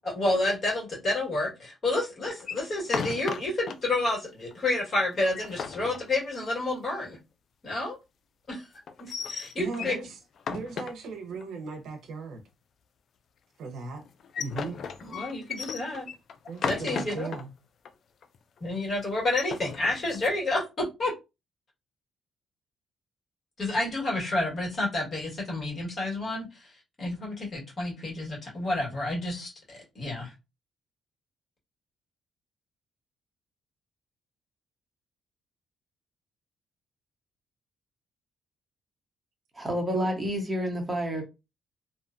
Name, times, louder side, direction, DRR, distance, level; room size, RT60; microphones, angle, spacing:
voice 1, 0.0-7.2 7.6-8.0 8.5-8.6 9.0-9.9 15.1-16.0 16.6-17.3 18.6-21.1 23.6-26.5 27.0-30.3, left 2 dB, 45° left, 1.5 m, -29 dB
sound 1, 2.4-3.8 4.1-4.2 4.5-4.6 5.1-6.6 8.9-10.0 10.4-11.4 14.0-17.4 17.9-18.0 18.2-18.6 19.2-20.4, left 6 dB, 60° left, 0.3 m, -35 dB
voice 2, 9.6-10.2 10.5-12.4 13.6-14.0 14.4-14.8 16.5-17.5 39.9-40.1, right 4 dB, 75° right, 0.6 m, -37 dB
voice 3, 39.6-41.3, equal, 15° right, 0.9 m, -29 dB
2.6 x 2.1 x 2.5 m
cardioid pair, 90°, 0 cm